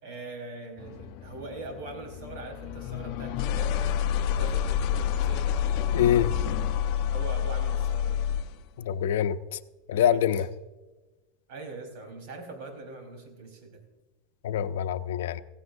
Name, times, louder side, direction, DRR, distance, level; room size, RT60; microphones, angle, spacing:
voice 1, 0.0-5.6 7.1-8.2 9.9-10.4 11.5-13.8, right 3 dB, 45° right, 2 dB, 4.1 m, -42 dB
sound 1, 0.8-8.6, left 9 dB, 40° left, 0.7 m, -29 dB
voice 2, 5.9-6.3 8.8-9.6 9.9-10.5 14.4-15.4, left 9 dB, 80° left, 12 dB, 0.6 m, -25 dB
16.0 x 16.0 x 2.6 m, 1.1 s
supercardioid pair, 175°, 0 cm